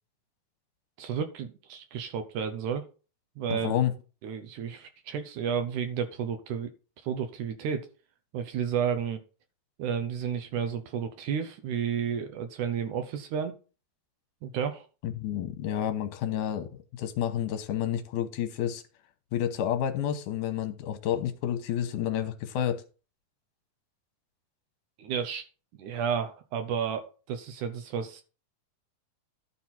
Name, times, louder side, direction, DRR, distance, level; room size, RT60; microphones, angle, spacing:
voice 1, 1.0-2.9 3.4-3.7 4.2-6.7 7.0-7.9 8.3-9.2 9.8-13.5 14.4-14.9 25.0-25.4 25.8-28.2, right 7 dB, 75° right, 7 dB, 2.2 m, -32 dB
voice 2, 3.5-3.9 15.0-18.8 19.3-22.8, left 10 dB, 75° left, 8 dB, 2.5 m, -30 dB
12.0 x 4.2 x 5.9 m, 0.35 s
omnidirectional pair, 3.8 m